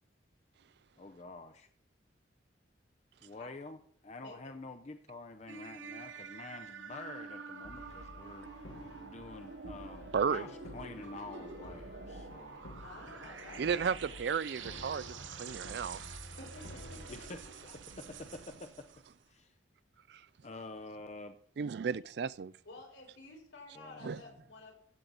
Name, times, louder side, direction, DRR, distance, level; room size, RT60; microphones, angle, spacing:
voice 1, 1.0-1.7 3.2-8.5 9.0-12.6 13.2-13.5 17.1-17.4 17.7-18.7 19.3-19.5 20.4-21.4 23.8-24.3, left 3 dB, 35° left, 0.6 m, -48 dB
sound 1, 5.5-19.2, right 5 dB, 80° right, 1.0 m, -48 dB
Brass instrument, 7.6-17.4, left 1 dB, 65° left, 1.8 m, -51 dB
voice 2, 10.1-10.4 13.6-16.0 20.1-20.2 21.6-22.5 24.0-24.2, right 6 dB, 55° right, 0.3 m, -34 dB
voice 3, 12.8-13.9 16.3-17.1 22.6-24.8, left 2 dB, 80° left, 4.3 m, -51 dB
15.0 x 7.5 x 3.9 m
head